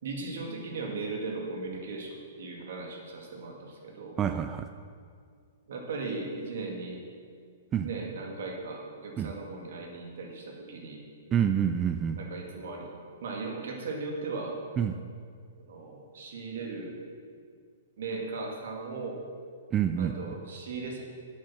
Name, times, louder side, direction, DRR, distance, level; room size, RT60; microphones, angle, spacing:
voice 1, 0.0-4.2 5.7-7.0 7.8-11.0 12.2-12.9 13.2-14.5 15.7-16.9 18.0-19.2 20.0-21.0, right 3 dB, 70° right, 1 dB, 2.0 m, -37 dB
voice 2, 4.2-4.7 7.7-7.9 9.2-9.3 11.3-12.2 14.8-14.9 19.7-20.4, right 8 dB, 25° right, 8 dB, 0.4 m, -27 dB
8.8 x 7.6 x 5.9 m, 2.2 s
hypercardioid pair, 130°, 0 cm